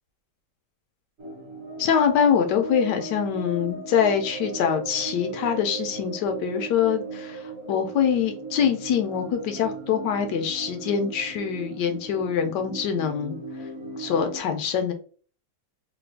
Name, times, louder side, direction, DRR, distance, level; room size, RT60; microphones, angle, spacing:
sound 1, 1.2-14.4, right 3 dB, 45° right, 0.9 m, -37 dB
voice 1, 1.8-13.4 14.0-14.9, left 7 dB, 75° left, 6 dB, 1.1 m, -24 dB
3.3 x 2.3 x 3.2 m, 0.41 s
omnidirectional pair, 2.0 m